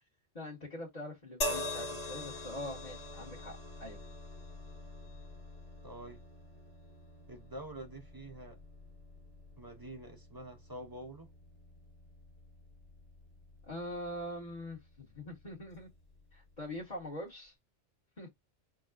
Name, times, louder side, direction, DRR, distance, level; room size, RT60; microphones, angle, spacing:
voice 1, 0.3-4.0 13.7-15.9 16.3-17.5 18.2-18.3, left 1 dB, 35° left, 1.5 m, -43 dB
sound 1, 1.4-14.7 15.7-15.9, left 1 dB, 60° left, 2.0 m, -44 dB
voice 2, 5.8-6.2 7.3-8.6 9.6-11.3, right 1 dB, 25° right, 0.5 m, -47 dB
6.3 x 2.2 x 2.4 m
omnidirectional pair, 1.2 m